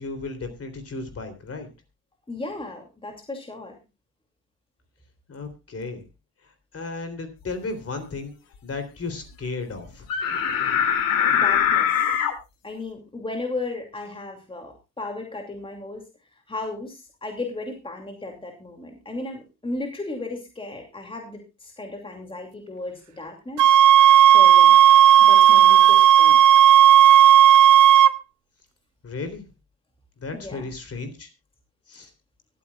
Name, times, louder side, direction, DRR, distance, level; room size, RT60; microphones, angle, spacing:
voice 1, 0.0-1.7 5.3-6.0 6.7-8.3 8.6-10.1 29.0-29.4 30.2-31.3 31.9-32.1, left 3 dB, 40° left, 7 dB, 3.5 m, -34 dB
voice 2, 2.3-3.8 11.3-11.9 12.6-16.1 16.5-23.6 24.2-24.8 25.2-26.4 30.3-30.7, left 2 dB, 15° left, 2 dB, 2.6 m, -35 dB
sound 1, 10.1-12.3, left 8 dB, 70° left, 2.3 m, -22 dB
sound 2, 23.6-28.1, right 10 dB, 55° right, 0.7 m, -12 dB
24.0 x 8.6 x 2.4 m, 0.26 s
supercardioid pair, 75°, 36 cm